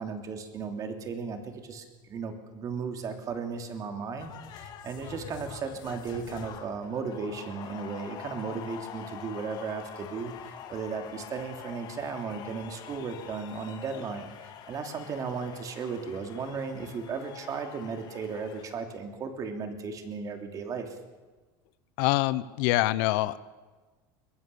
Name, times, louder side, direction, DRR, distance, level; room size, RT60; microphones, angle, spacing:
voice 1, 0.0-4.3 4.6-21.0, right 5 dB, 30° right, 6 dB, 3.0 m, -35 dB
sound 1, 4.2-18.6, left 8 dB, 40° left, 2.6 m, -45 dB
voice 2, 22.0-23.4, left 18 dB, 70° left, 16 dB, 0.9 m, -25 dB
22.5 x 21.5 x 7.0 m, 1.3 s
supercardioid pair, 145°, 11 cm